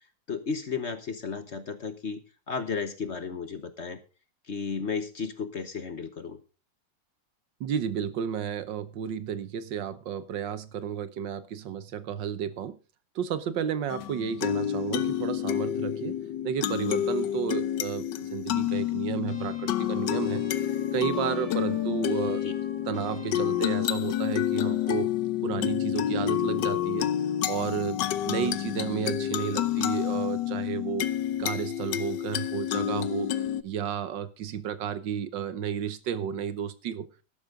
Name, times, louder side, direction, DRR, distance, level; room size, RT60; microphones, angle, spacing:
voice 1, 0.3-2.2 2.5-4.0 4.5-6.4 22.2-22.5, left 5 dB, 45° left, 10 dB, 1.1 m, -33 dB
voice 2, 7.6-12.8 13.1-16.2 16.4-20.5 20.9-22.4 22.9-25.1 25.4-27.1 27.5-28.0 28.3-31.1 31.4-33.3 33.6-37.1, right 8 dB, 80° right, 14 dB, 1.7 m, -32 dB
sound 1, 13.9-33.6, left 11 dB, 75° left, 1.4 m, -29 dB
sound 2, 19.3-25.0, left 2 dB, 25° left, 2.6 m, -47 dB
12.5 x 12.0 x 3.8 m, 0.32 s
omnidirectional pair, 2.0 m